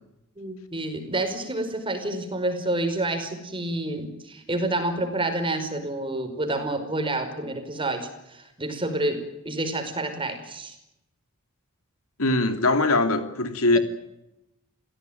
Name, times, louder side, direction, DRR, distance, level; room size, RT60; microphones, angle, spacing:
voice 1, 0.4-10.7, right 2 dB, 25° right, 5.1 m, -29 dB
voice 2, 12.2-13.8, left 2 dB, 75° left, 2.9 m, -21 dB
29.0 x 17.0 x 9.3 m
head